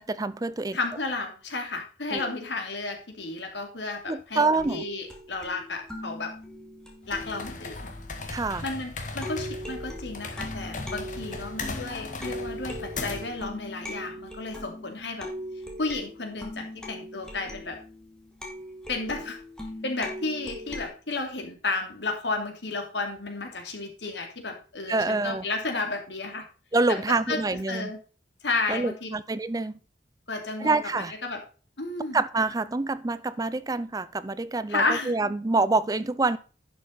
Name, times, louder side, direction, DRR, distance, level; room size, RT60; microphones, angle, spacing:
voice 1, 0.0-0.8 2.1-2.3 4.1-4.8 8.3-8.6 24.9-25.4 26.7-27.9 28.7-29.8 30.6-31.1 32.1-36.4, right 3 dB, 20° right, 16 dB, 0.5 m, -26 dB
voice 2, 0.7-6.3 7.1-7.9 8.6-15.3 15.8-17.8 18.9-19.4 19.8-26.4 27.1-28.0 28.4-29.1 30.3-31.4 31.8-32.2 34.7-35.1, left 3 dB, 85° left, 4 dB, 2.7 m, -32 dB
sound 1, 4.6-8.8 9.2-20.9, left 1 dB, 5° left, 2.3 m, -40 dB
sound 2, 7.0-13.4, left 3 dB, 45° left, 1.7 m, -37 dB
11.0 x 6.3 x 4.0 m, 0.36 s
head